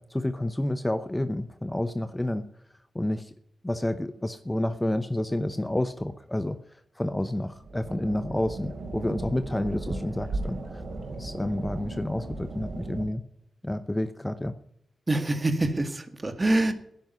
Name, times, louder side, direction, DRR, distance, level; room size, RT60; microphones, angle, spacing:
voice 1, 0.0-2.4 2.9-3.3 3.6-6.6 7.0-10.8 11.2-13.2 13.6-14.5, left 1 dB, 15° left, 11 dB, 0.8 m, -29 dB
sound 1, 7.5-13.1, right 2 dB, 65° right, 4.3 m, -36 dB
voice 2, 15.1-16.7, right 2 dB, 30° right, 8 dB, 1.9 m, -25 dB
11.0 x 10.5 x 9.4 m, 0.74 s
cardioid pair, 80°, 0 cm